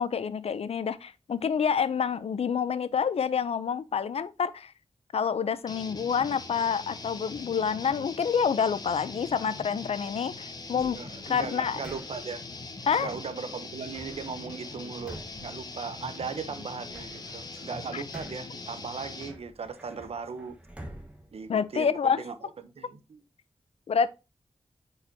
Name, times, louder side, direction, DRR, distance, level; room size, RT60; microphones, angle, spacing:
voice 1, 0.0-4.7 5.1-11.0 11.3-11.8 12.9-13.1 17.9-18.0 21.5-22.2 23.9-24.1, left 6 dB, 85° left, 0.5 m, -28 dB
sound 1, 5.7-19.4, left 3 dB, 40° left, 0.9 m, -42 dB
voice 2, 10.7-12.4 13.0-20.6 21.3-23.2, right 5 dB, 80° right, 0.8 m, -38 dB
sound 2, 10.8-12.4 13.9-16.3 16.7-18.6 19.2-22.2, right 1 dB, 10° right, 1.2 m, -48 dB
8.7 x 4.9 x 2.8 m
wide cardioid pair, 125°, 10 cm